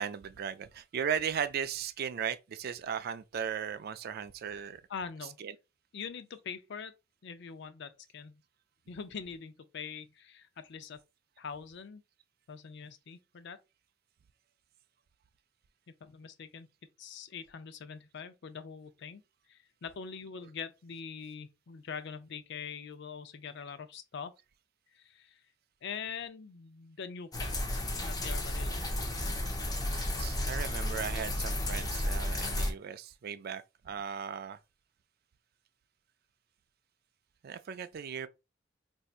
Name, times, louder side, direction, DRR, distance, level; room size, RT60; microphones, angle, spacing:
voice 1, 0.0-4.8 5.2-5.6 28.3-28.5 29.9-34.6 37.4-38.3, right 8 dB, 55° right, 0.3 m, -37 dB
voice 2, 4.9-5.4 5.9-6.9 7.2-8.4 8.9-11.0 11.4-12.0 12.5-13.6 16.0-16.7 17.0-19.2 19.5-24.3 24.9-25.4 25.8-28.8, left 6 dB, 65° left, 0.5 m, -43 dB
sound 1, 27.3-32.7, left 1 dB, 20° left, 0.7 m, -33 dB
4.3 x 2.7 x 2.3 m
head